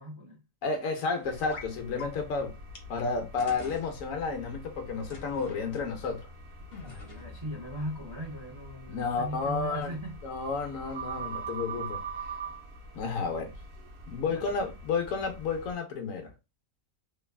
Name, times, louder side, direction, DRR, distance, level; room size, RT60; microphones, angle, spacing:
voice 1, 0.0-0.4 6.8-10.2 14.3-14.7, equal, 35° right, 0.4 m, -39 dB
voice 2, 0.6-2.6 2.9-6.3 8.9-9.9 10.2-12.0 12.9-13.5 14.1-16.3, left 4 dB, 80° left, 1.2 m, -31 dB
sound 1, 1.2-15.7, right 3 dB, 60° right, 0.9 m, -44 dB
sound 2, 1.5-1.7 2.0-2.1 2.7-2.8 3.4-3.9 5.1-5.6 6.7-7.4, left 4 dB, 55° left, 0.8 m, -44 dB
3.0 x 2.3 x 2.3 m
omnidirectional pair, 1.4 m